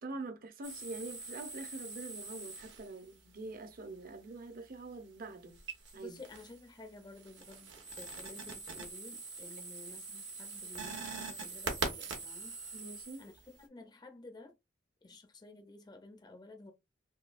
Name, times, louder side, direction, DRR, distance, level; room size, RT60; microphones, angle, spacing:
voice 1, 0.0-5.6 5.9-6.2 12.7-13.2, right 3 dB, 50° right, 0.7 m, -45 dB
sound 1, 0.6-3.1 5.5-6.6 7.0-13.6, right 4 dB, 70° right, 1.1 m, -43 dB
voice 2, 5.9-12.6 13.2-14.5 15.0-16.7, left 2 dB, 20° left, 0.5 m, -52 dB
3.8 x 2.7 x 2.4 m
head